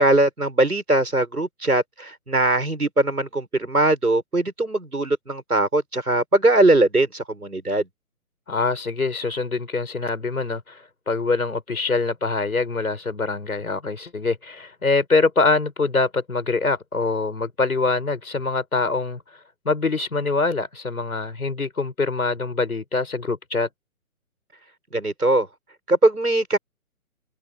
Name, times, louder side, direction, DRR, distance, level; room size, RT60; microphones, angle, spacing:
voice 1, 0.0-7.9 24.9-25.5 25.9-26.6, right 2 dB, 85° right, 7.5 m, -20 dB
voice 2, 8.5-19.2 19.6-23.7, left 3 dB, 70° left, 6.5 m, -24 dB
figure-of-eight pair, 140°, 44 cm